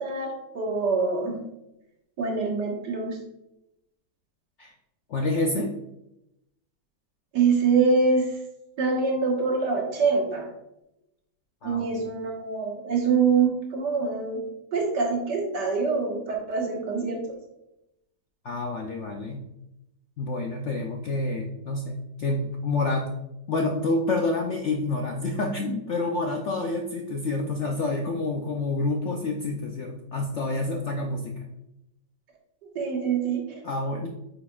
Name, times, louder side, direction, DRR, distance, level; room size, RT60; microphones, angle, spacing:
voice 1, 0.0-1.4 2.2-3.2 7.3-8.3 8.8-10.5 11.6-14.5 14.7-17.3 32.8-33.6, right 4 dB, 70° right, -2 dB, 2.0 m, -25 dB
voice 2, 5.1-5.7 11.6-12.1 18.4-19.5 20.2-23.1 23.5-31.5 33.6-34.1, left 2 dB, 65° left, 2 dB, 0.7 m, -28 dB
8.6 x 5.0 x 2.4 m, 0.87 s
omnidirectional pair, 1.9 m